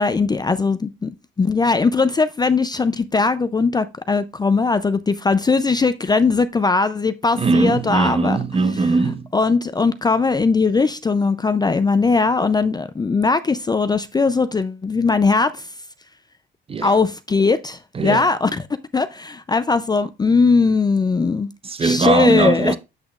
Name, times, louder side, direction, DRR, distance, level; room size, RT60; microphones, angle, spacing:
voice 1, 0.0-8.4 9.3-15.7 16.8-18.6 18.9-21.5 21.8-22.7, left 4 dB, 20° left, 0.4 m, -19 dB
voice 2, 7.3-9.3 16.7-16.9 17.9-18.3 21.6-22.8, right 3 dB, 30° right, 0.6 m, -20 dB
7.9 x 6.0 x 2.4 m
cardioid pair, 90°, 20 cm